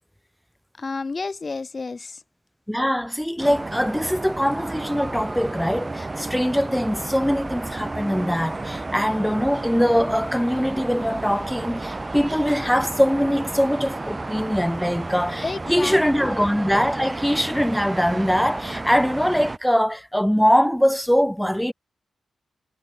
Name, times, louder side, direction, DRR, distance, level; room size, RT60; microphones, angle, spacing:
voice 1, 0.8-2.2 15.4-16.0, left 4 dB, 40° left, 2.9 m, -30 dB
voice 2, 2.7-21.7, equal, ahead, 1.2 m, -22 dB
sound 1, 3.4-19.6, right 2 dB, 25° right, 1.5 m, -32 dB
cardioid pair, 70°, 0 cm